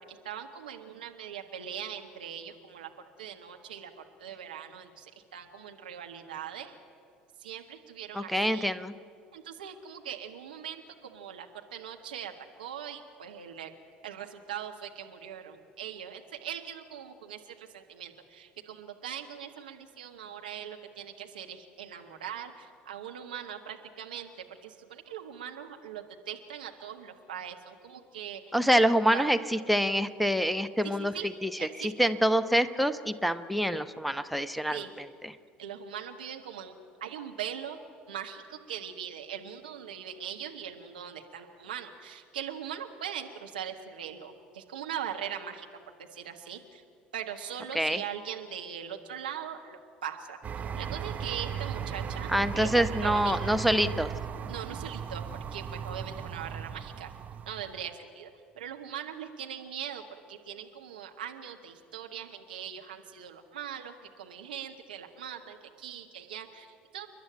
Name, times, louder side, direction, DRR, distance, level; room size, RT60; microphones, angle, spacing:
voice 1, 0.1-2.9 3.2-6.8 7.4-8.7 9.3-13.7 14.0-24.3 24.6-28.5 28.8-29.3 30.8-31.3 31.6-32.2 34.7-34.9 35.6-36.7 37.0-37.8 38.1-45.7 46.0-46.8 47.1-50.4 50.8-53.6 54.5-55.2 55.5-57.1 57.5-58.3 58.6-60.0 60.3-67.1, right 9 dB, 70° right, 4 dB, 1.5 m, -41 dB
voice 2, 8.1-8.9 28.5-31.1 31.4-31.5 31.8-34.8 35.2-35.3 47.7-48.0 52.3-54.1, equal, ahead, 13 dB, 0.9 m, -26 dB
sound 1, 50.4-57.9, right 7 dB, 30° right, 0.9 m, -37 dB
29.0 x 11.0 x 9.0 m, 2.3 s
figure-of-eight pair, 65°, 5 cm